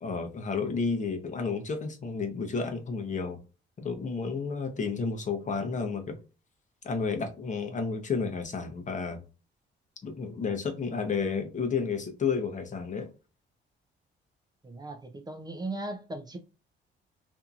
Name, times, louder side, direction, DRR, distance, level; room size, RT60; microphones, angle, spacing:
voice 1, 0.0-3.4 3.8-6.2 6.8-9.2 10.0-13.1, left 5 dB, 40° left, 0.7 m, -31 dB
voice 2, 14.6-16.4, right 2 dB, 20° right, 0.4 m, -37 dB
2.8 x 2.6 x 2.3 m
cardioid pair, 90°, 20 cm